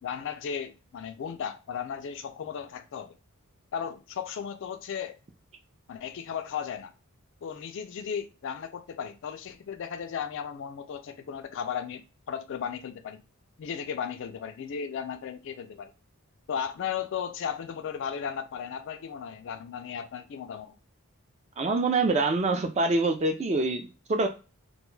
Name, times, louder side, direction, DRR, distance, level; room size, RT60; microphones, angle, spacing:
voice 1, 0.0-3.2 3.7-5.2 5.9-6.9 7.4-13.2 13.6-15.9 16.5-20.8, left 7 dB, 55° left, 0.3 m, -35 dB
voice 2, 21.6-24.3, right 3 dB, 30° right, 0.4 m, -25 dB
2.2 x 2.1 x 3.1 m
head